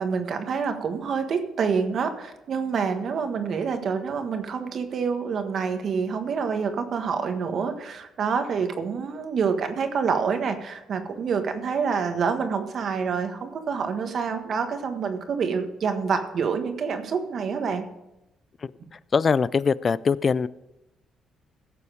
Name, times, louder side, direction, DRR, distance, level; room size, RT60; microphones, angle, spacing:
voice 1, 0.0-17.9, right 6 dB, 60° right, 7 dB, 1.5 m, -27 dB
voice 2, 19.1-20.5, left 5 dB, 40° left, 19 dB, 0.4 m, -22 dB
16.5 x 7.0 x 5.0 m, 0.91 s
cardioid pair, 90°, 0 cm